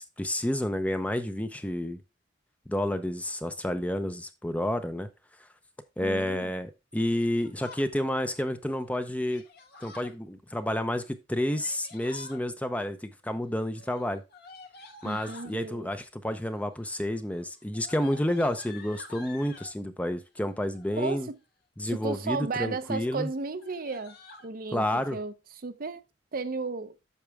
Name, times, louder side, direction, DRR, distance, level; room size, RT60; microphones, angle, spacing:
voice 1, 0.0-2.0 2.7-5.1 6.0-9.4 9.8-14.2 15.0-21.3 21.8-23.3 24.7-25.2, left 1 dB, 10° left, 0.6 m, -30 dB
voice 2, 6.0-6.6 15.0-15.9 21.0-21.4 21.9-24.2 24.4-25.3 25.6-26.0 26.3-27.0, right 4 dB, 50° right, 0.6 m, -34 dB
Yell, 7.1-7.9 9.2-10.1 11.3-12.4 13.7-15.5 16.4-16.8 17.1-19.7 20.7-21.3 21.8-22.3 22.7-22.9 23.1-23.2 23.5-24.5, left 3 dB, 55° left, 1.5 m, -50 dB
8.4 x 6.0 x 3.4 m
head